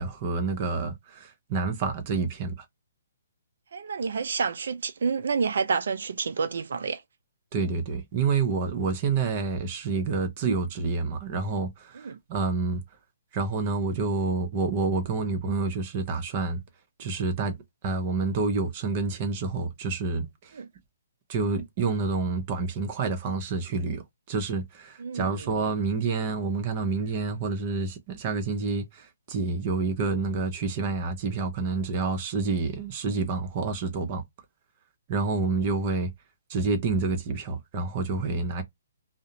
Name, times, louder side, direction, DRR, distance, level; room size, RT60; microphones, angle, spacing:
voice 1, 0.0-2.5 7.5-12.8 13.3-16.6 17.0-17.6 17.8-20.3 21.3-24.0 24.3-34.2 35.1-36.1 36.5-38.6, right 4 dB, 40° right, 0.8 m, -28 dB
voice 2, 3.7-7.0 11.9-12.2 20.5-20.7 25.0-25.5, right 5 dB, 70° right, 0.4 m, -29 dB
2.4 x 2.1 x 2.8 m
hypercardioid pair, 145°, 0 cm